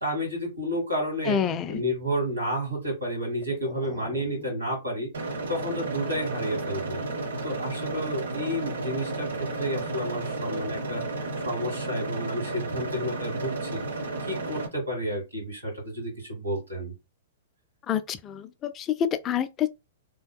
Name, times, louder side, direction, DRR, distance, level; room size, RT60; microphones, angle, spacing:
voice 1, 0.0-1.4 1.7-7.0 7.4-11.0 11.4-16.9, equal, 85° right, 1.9 m, -31 dB
voice 2, 1.3-1.8 3.6-3.7 17.9-19.7, left 9 dB, 25° left, 0.3 m, -28 dB
sound 1, 5.1-14.7, right 2 dB, 70° right, 0.7 m, -32 dB
3.5 x 2.8 x 2.2 m
figure-of-eight pair, 105°, 0 cm